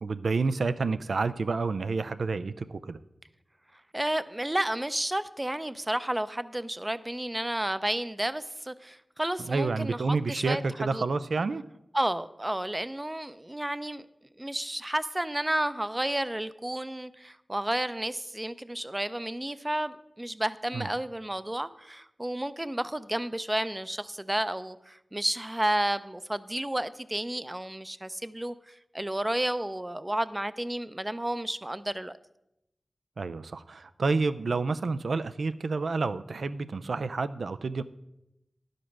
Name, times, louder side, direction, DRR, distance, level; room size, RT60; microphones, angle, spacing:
voice 1, 0.0-3.0 9.5-11.6 20.7-20.9 33.2-37.8, right 4 dB, 90° right, 13 dB, 0.4 m, -29 dB
voice 2, 3.9-10.6 10.9-11.0 11.9-14.0 14.4-32.1, right 1 dB, 20° right, 14 dB, 0.4 m, -31 dB
11.0 x 5.1 x 5.9 m, 0.86 s
wide cardioid pair, 65°, 0 cm